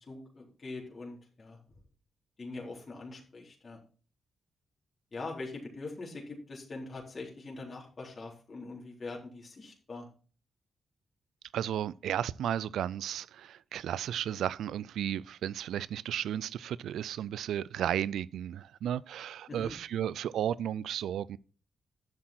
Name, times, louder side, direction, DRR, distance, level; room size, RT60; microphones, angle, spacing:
voice 1, 0.1-1.6 2.4-3.8 5.1-10.1 19.5-19.7, left 3 dB, 45° left, 3.8 m, -43 dB
voice 2, 11.5-21.4, right 10 dB, 85° right, 0.4 m, -34 dB
11.0 x 7.5 x 4.3 m
cardioid pair, 65°, 0 cm